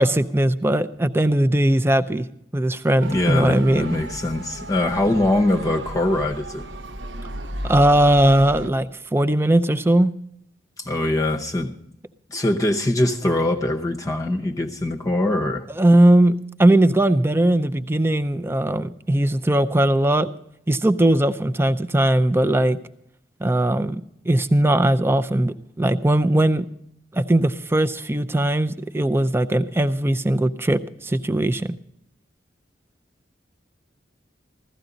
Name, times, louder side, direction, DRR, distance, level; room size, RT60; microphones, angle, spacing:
voice 1, 0.0-2.3 2.5-3.9 7.6-10.1 15.7-20.3 20.7-22.8 23.4-26.7 27.1-31.8, right 1 dB, 15° right, 0.5 m, -19 dB
Motor vehicle (road) / Siren, 3.0-8.7, right 1 dB, 75° right, 1.0 m, -34 dB
voice 2, 3.1-6.7 10.8-11.7 12.3-15.7, left 1 dB, 20° left, 0.8 m, -22 dB
16.0 x 13.5 x 3.9 m
head